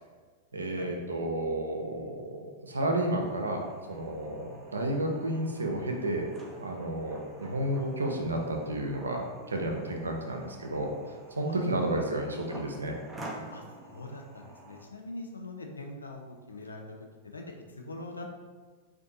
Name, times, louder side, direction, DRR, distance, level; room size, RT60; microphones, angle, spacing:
voice 1, 0.5-2.4 2.6-3.6 3.9-6.3 6.6-9.2 9.5-10.9 11.4-12.9, right 1 dB, 80° right, 2 dB, 0.4 m, -31 dB
sound 1, 3.2-14.9, right 2 dB, 15° right, 0.4 m, -49 dB
voice 2, 13.5-16.2 16.5-17.0 17.2-18.3, left 2 dB, 85° left, 2 dB, 0.3 m, -43 dB
2.5 x 2.2 x 2.6 m, 1.4 s
figure-of-eight pair, 95°, 0 cm